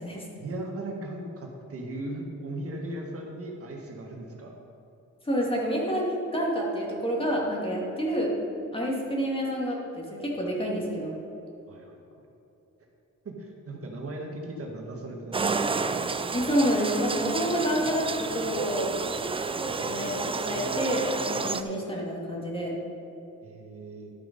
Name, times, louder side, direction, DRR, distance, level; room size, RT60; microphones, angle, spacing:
voice 1, 0.4-4.5 11.7-12.0 13.2-15.8 23.4-24.1, right 1 dB, 50° right, 0 dB, 1.7 m, -37 dB
voice 2, 5.2-8.3 8.7-11.2 16.3-18.9 19.6-22.8, equal, 20° left, -3 dB, 2.5 m, -28 dB
sound 1, 15.3-21.6, right 4 dB, 20° right, 0.4 m, -30 dB
12.0 x 6.0 x 5.3 m, 2.9 s
cardioid pair, 90°, 30 cm